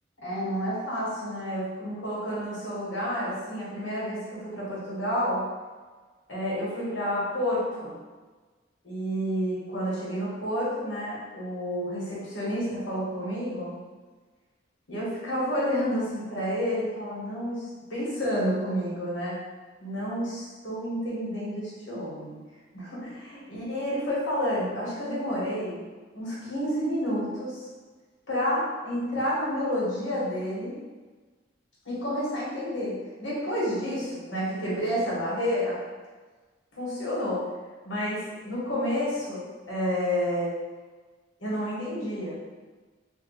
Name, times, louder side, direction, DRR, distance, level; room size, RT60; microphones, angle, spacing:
voice 1, 0.2-5.4 6.3-7.9 8.8-13.8 14.9-19.4 19.8-22.4 22.7-25.8 26.1-27.7 28.3-30.8 31.8-32.9 33.2-35.8 36.7-37.5 37.8-40.5 41.4-42.4, equal, 85° left, -7 dB, 1.4 m, -30 dB
2.8 x 2.5 x 3.9 m, 1.4 s
head